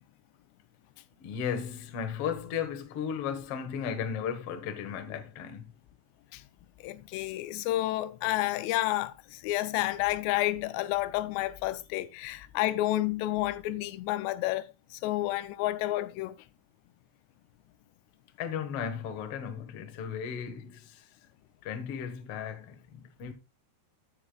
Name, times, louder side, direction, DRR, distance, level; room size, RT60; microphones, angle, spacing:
voice 1, 1.2-5.7 18.4-21.0 21.6-23.3, left 7 dB, 65° left, 1.5 m, -35 dB
voice 2, 6.8-16.4, left 16 dB, 85° left, 2.8 m, -30 dB
9.9 x 9.9 x 2.3 m
omnidirectional pair, 4.9 m